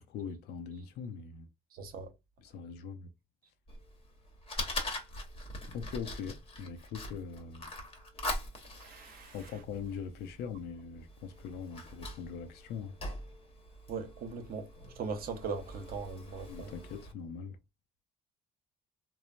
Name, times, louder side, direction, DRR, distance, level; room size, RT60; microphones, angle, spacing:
voice 1, 0.0-1.5 2.4-3.1 5.7-7.7 9.3-12.9 16.5-17.6, left 6 dB, 75° left, 0.5 m, -42 dB
voice 2, 1.7-2.1 8.7-9.4 13.9-14.7 15.0-16.7, right 5 dB, 60° right, 0.8 m, -39 dB
Fire, 3.7-17.1, left 1 dB, 35° left, 1.0 m, -43 dB
3.1 x 2.0 x 2.4 m
cardioid pair, 110°, 17 cm